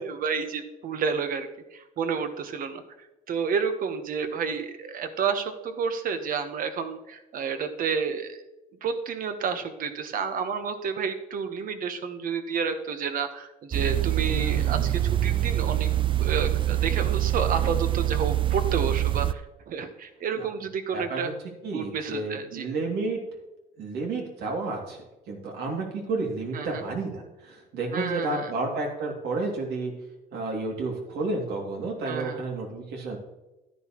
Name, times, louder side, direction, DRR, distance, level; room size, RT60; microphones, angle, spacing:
voice 1, 0.0-2.8 3.3-8.4 8.8-15.9 16.2-21.3 21.7-22.7 26.5-26.8 27.9-28.5 32.0-32.4, right 6 dB, 55° right, 8 dB, 1.1 m, -30 dB
sound 1, 13.7-19.3, right 13 dB, 30° right, 0.4 m, -25 dB
voice 2, 14.3-14.9 20.4-20.5 20.9-21.3 21.6-23.2 23.8-29.9 30.3-33.2, right 3 dB, 75° right, 0 dB, 2.6 m, -31 dB
11.5 x 9.8 x 3.1 m, 1.0 s
cardioid pair, 110°, 17 cm